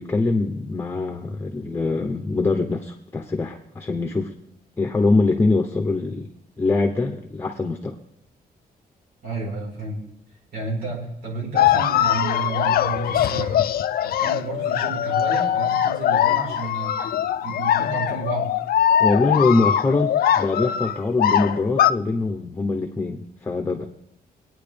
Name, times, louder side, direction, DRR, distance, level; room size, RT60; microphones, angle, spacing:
voice 1, 0.0-4.3 4.8-6.3 6.6-8.0 19.0-23.9, left 3 dB, 15° left, 3 dB, 1.0 m, -23 dB
voice 2, 9.2-10.0 10.5-13.6 14.0-16.9 17.4-18.6, right 3 dB, 70° right, -2 dB, 4.8 m, -31 dB
sound 1, 11.6-21.9, left 10 dB, 70° left, 0.5 m, -21 dB
25.5 x 9.5 x 3.4 m, 0.80 s
wide cardioid pair, 180°, 16 cm